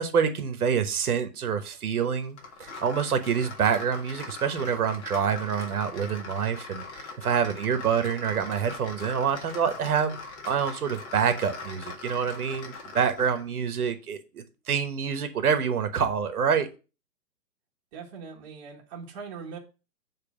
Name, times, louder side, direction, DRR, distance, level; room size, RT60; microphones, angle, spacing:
voice 1, 0.0-10.2 10.4-16.7, right 7 dB, 65° right, 1.2 m, -27 dB
sound 1, 2.4-13.5, left 4 dB, 45° left, 1.7 m, -41 dB
voice 2, 17.9-19.6, right 5 dB, 20° right, 1.2 m, -41 dB
6.9 x 3.3 x 6.0 m
hypercardioid pair, 160°, 48 cm